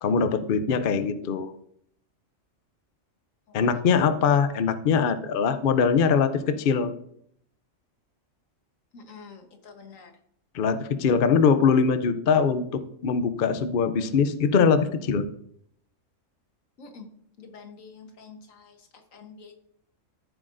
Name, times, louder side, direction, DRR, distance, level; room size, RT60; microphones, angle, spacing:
voice 1, 0.0-1.5 3.5-6.9 10.5-15.2, left 6 dB, 50° left, 10 dB, 0.7 m, -22 dB
voice 2, 8.9-10.1 16.8-17.1 17.4-19.5, left 5 dB, 80° left, 5 dB, 1.6 m, -47 dB
14.0 x 7.5 x 2.6 m, 0.68 s
omnidirectional pair, 1.4 m